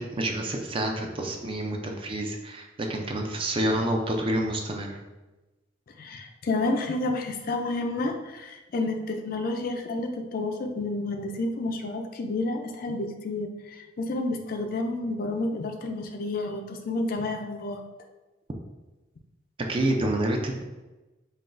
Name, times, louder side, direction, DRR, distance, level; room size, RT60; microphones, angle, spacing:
voice 1, 0.0-5.0 19.7-20.6, right 1 dB, 30° right, 2 dB, 0.4 m, -28 dB
voice 2, 6.0-17.8, left 2 dB, 50° left, 4 dB, 0.4 m, -30 dB
5.6 x 2.3 x 2.5 m, 1.1 s
head